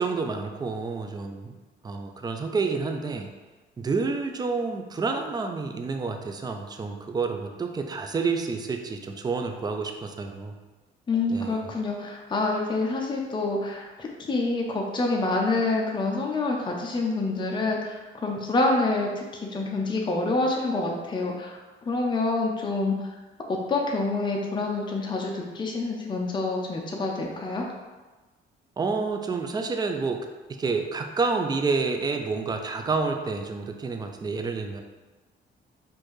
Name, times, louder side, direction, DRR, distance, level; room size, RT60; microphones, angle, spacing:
voice 1, 0.0-1.5 1.8-3.3 3.8-10.5 11.3-11.6 28.8-34.8, right 4 dB, 20° right, 5 dB, 0.4 m, -29 dB
voice 2, 11.1-19.1 19.5-21.6 21.9-23.0 23.5-27.6, left 3 dB, 25° left, 0 dB, 0.6 m, -27 dB
4.3 x 2.6 x 3.1 m, 1.2 s
cardioid pair, 90°, 20 cm